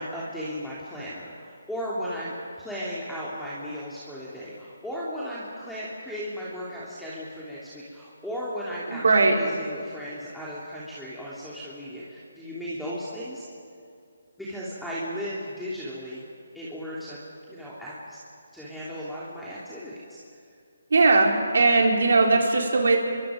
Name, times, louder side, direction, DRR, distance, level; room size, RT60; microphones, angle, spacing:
voice 1, 0.0-13.4 14.4-16.2 16.5-17.2 17.5-18.2 18.5-20.0, equal, ahead, -9 dB, 3.3 m, -36 dB
voice 2, 8.9-9.4 20.9-23.0, right 3 dB, 70° right, 1 dB, 3.9 m, -19 dB
28.0 x 23.0 x 5.2 m, 2.4 s
figure-of-eight pair, 155°, 0 cm